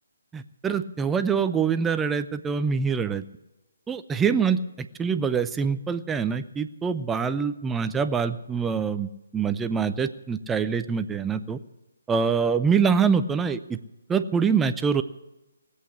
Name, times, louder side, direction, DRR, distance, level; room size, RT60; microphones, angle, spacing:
voice 1, 0.3-3.2 3.9-11.6 12.1-13.8 14.1-15.0, right 6 dB, 10° right, 11 dB, 0.6 m, -25 dB
19.0 x 8.3 x 8.5 m, 1.0 s
figure-of-eight pair, 145°, 0 cm